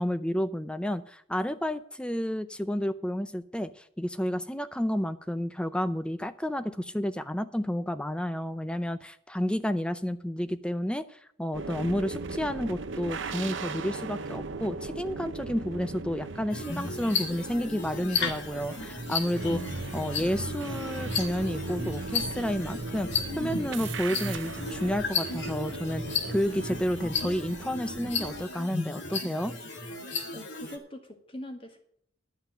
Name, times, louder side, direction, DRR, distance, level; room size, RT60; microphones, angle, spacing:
voice 1, 0.0-19.6 19.9-23.1 23.4-29.5, equal, 5° left, 12 dB, 0.5 m, -31 dB
sound 1, 11.5-28.5, right 3 dB, 75° right, 0.8 m, -38 dB
sound 2, 16.5-30.8, left 4 dB, 70° left, 1.9 m, -34 dB
voice 2, 30.3-31.8, left 1 dB, 30° left, 4 dB, 1.8 m, -42 dB
12.0 x 5.8 x 8.9 m, 0.67 s
head